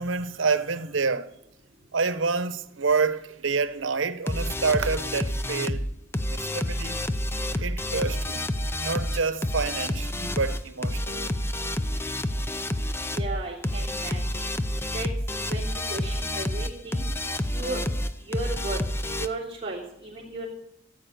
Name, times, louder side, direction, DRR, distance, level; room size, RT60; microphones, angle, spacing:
voice 1, 0.0-1.3 1.9-5.9 6.3-7.0 7.5-8.5 8.8-11.3, right 4 dB, 85° right, 0.9 m, -28 dB
sound 1, 4.3-19.3, left 1 dB, 15° left, 0.6 m, -29 dB
voice 2, 13.1-14.4 14.9-15.1 15.5-17.1 17.5-17.8 18.3-18.8 19.2-20.5, right 2 dB, 25° right, 3.3 m, -35 dB
14.5 x 8.5 x 6.6 m
head